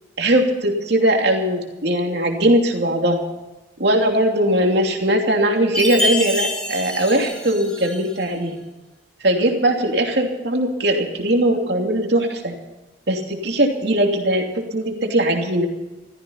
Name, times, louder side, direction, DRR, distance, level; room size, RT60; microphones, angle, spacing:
voice 1, 0.2-3.2 3.8-8.6 9.2-12.5 13.1-14.4 14.7-15.7, right 1 dB, 60° right, 2 dB, 2.9 m, -20 dB
Chime, 5.8-8.2, left 1 dB, 5° left, 2.3 m, -26 dB
15.0 x 14.5 x 5.7 m, 1.1 s
head